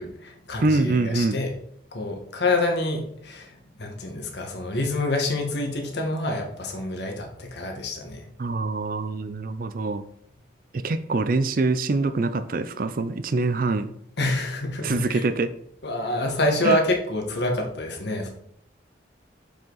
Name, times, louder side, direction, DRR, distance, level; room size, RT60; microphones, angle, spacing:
voice 1, 0.0-1.5 1.9-8.3 14.2-15.2 15.8-18.3, left 2 dB, 65° left, 2 dB, 1.5 m, -27 dB
voice 2, 0.6-1.4 8.4-10.0 10.7-13.9 14.8-15.5 16.6-16.8, right 3 dB, 50° right, 12 dB, 0.4 m, -24 dB
7.2 x 5.2 x 4.0 m, 0.70 s
head